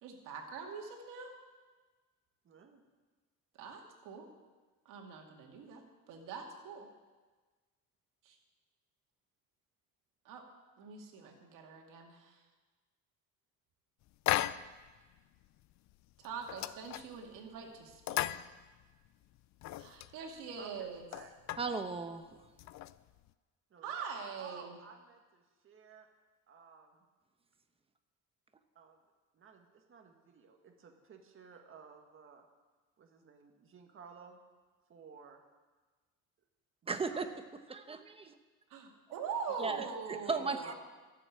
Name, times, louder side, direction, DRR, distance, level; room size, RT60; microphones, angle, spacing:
voice 1, 0.0-1.3 3.6-4.3 4.9-6.9 8.3-8.4 10.2-10.4 10.8-12.4 16.2-18.4 19.8-21.0 23.8-24.8 38.7-40.7, right 6 dB, 75° right, 1 dB, 2.4 m, -43 dB
voice 2, 2.4-2.8 20.6-21.3 21.6-21.8 23.7-23.9 24.4-26.1 26.5-27.0 28.7-29.0 29.3-32.4 33.0-34.4 34.9-35.4 37.1-37.4 40.3-40.7, right 5 dB, 40° right, 3 dB, 1.9 m, -55 dB
sound 1, 14.3-14.9 15.2-15.3 15.7-15.9 16.2-17.4 17.9-19.1 19.4-20.1 20.6-20.7 20.9-21.8 22.4-23.3, left 14 dB, 60° left, 0.5 m, -36 dB
voice 3, 21.6-22.3 36.9-37.3 37.7-38.3 39.6-40.7, right 4 dB, 20° right, 8 dB, 0.9 m, -36 dB
13.0 x 7.5 x 8.7 m, 1.3 s
cardioid pair, 130°, 32 cm